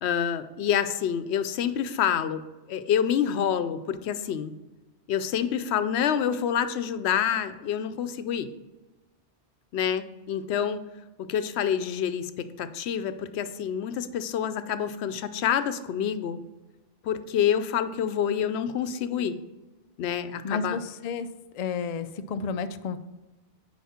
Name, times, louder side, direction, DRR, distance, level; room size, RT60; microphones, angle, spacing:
voice 1, 0.0-2.4 2.7-4.5 5.1-8.5 9.7-10.8 11.2-16.4 17.0-19.4 20.0-20.8, left 8 dB, 85° left, 11 dB, 0.9 m, -27 dB
voice 2, 20.4-21.3 21.5-23.0, left 5 dB, 55° left, 10 dB, 0.5 m, -31 dB
9.3 x 4.9 x 4.2 m, 1.1 s
omnidirectional pair, 1.1 m